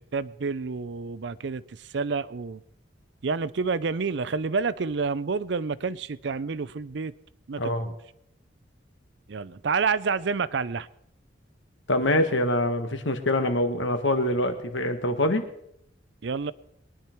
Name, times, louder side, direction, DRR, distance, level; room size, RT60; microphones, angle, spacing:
voice 1, 0.0-2.6 3.2-7.1 7.5-8.0 9.3-10.9 16.2-16.5, right 4 dB, 65° right, 0.5 m, -29 dB
voice 2, 11.9-15.4, left 1 dB, 75° left, 1.5 m, -25 dB
22.0 x 10.5 x 4.5 m
head